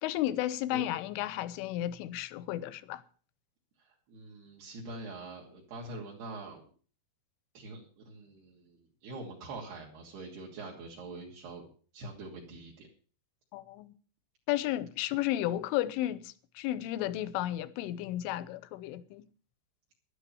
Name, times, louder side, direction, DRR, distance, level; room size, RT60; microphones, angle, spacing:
voice 1, 0.0-3.0 13.5-13.9 14.5-19.2, left 14 dB, 85° left, 3.3 m, -33 dB
voice 2, 3.8-6.6 7.5-11.6 11.9-12.9, right 2 dB, 60° right, 4.5 m, -44 dB
13.0 x 11.5 x 7.0 m
omnidirectional pair, 5.6 m